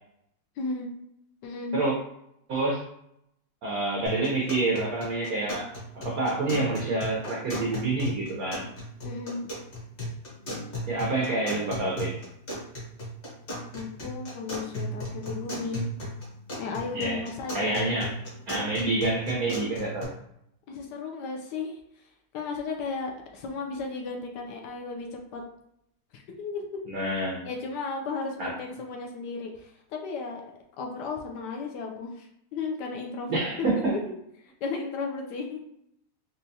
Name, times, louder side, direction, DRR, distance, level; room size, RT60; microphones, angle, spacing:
voice 1, 0.6-0.9 1.4-1.8 9.0-9.5 13.7-15.9 16.6-17.7 20.7-25.4 26.1-26.6 27.1-30.4 30.8-33.3 33.7-34.1 34.4-35.7, left 4 dB, 80° left, 2 dB, 0.9 m, -35 dB
voice 2, 2.5-2.9 3.6-8.7 10.9-12.2 16.9-17.2 17.5-18.1 18.5-20.1 26.9-27.5 28.4-28.5 33.3-34.0, right 2 dB, 75° right, -3 dB, 0.8 m, -28 dB
sound 1, 4.1-20.1, equal, 35° left, 1.0 m, -37 dB
4.3 x 2.3 x 2.7 m, 0.77 s
omnidirectional pair, 2.3 m